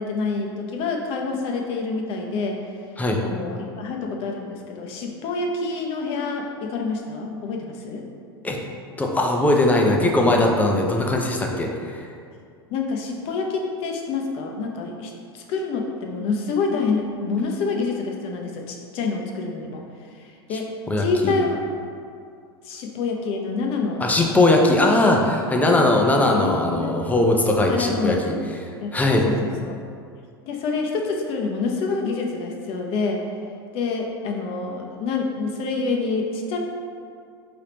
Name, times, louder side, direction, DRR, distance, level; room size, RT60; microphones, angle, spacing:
voice 1, 0.0-2.6 3.2-8.0 12.7-19.8 20.1-20.7 21.0-21.6 22.6-24.0 26.3-26.9 27.7-28.4 28.8-29.3 29.6-29.8 30.4-33.2 33.7-36.6, left 4 dB, 50° left, 1 dB, 0.7 m, -27 dB
voice 2, 9.0-12.0 20.9-21.3 24.0-28.4 28.9-29.3, left 2 dB, 10° left, 1 dB, 0.5 m, -19 dB
4.7 x 3.5 x 2.9 m, 2.3 s
hypercardioid pair, 90°, 13 cm